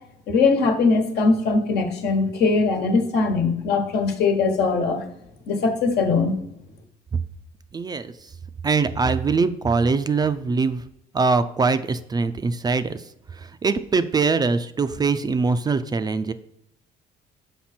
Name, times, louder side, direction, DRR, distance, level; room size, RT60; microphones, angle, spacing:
voice 1, 0.3-5.0 5.5-6.3, left 4 dB, 75° left, 4 dB, 1.3 m, -21 dB
voice 2, 7.7-8.1 8.6-10.8 11.1-13.0 13.6-16.3, right 4 dB, 25° right, 11 dB, 0.4 m, -22 dB
6.0 x 5.1 x 4.3 m, 0.80 s
cardioid pair, 110°, 17 cm